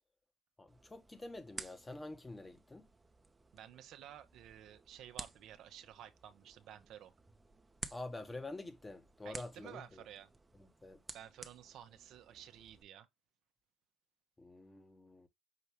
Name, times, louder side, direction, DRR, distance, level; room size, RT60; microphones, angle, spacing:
voice 1, 0.6-2.9 7.9-10.0 10.6-11.0 14.4-15.3, left 2 dB, 20° left, 1.0 m, -47 dB
sound 1, 0.7-12.8, right 3 dB, 20° right, 0.7 m, -54 dB
voice 2, 3.5-7.1 9.2-10.3 11.1-13.1, right 11 dB, 75° right, 0.7 m, -53 dB
5.9 x 2.7 x 3.3 m
supercardioid pair, 80°, 0 cm